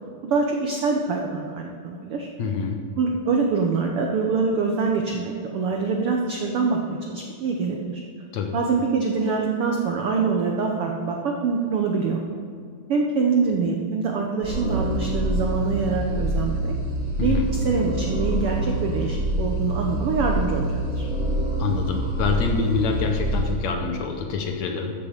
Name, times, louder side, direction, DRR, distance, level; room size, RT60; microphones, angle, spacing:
voice 1, 0.3-2.3 3.0-8.0 8.5-12.2 12.9-16.7 17.2-17.4 17.6-21.0, right 4 dB, 80° right, 1 dB, 1.2 m, -24 dB
voice 2, 2.4-2.8 8.3-8.6 17.2-17.5 21.6-24.9, left 5 dB, 70° left, 3 dB, 1.9 m, -26 dB
sound 1, 14.4-23.6, right 1 dB, 60° right, 4.1 m, -26 dB
14.0 x 7.6 x 5.1 m, 2.3 s
omnidirectional pair, 3.8 m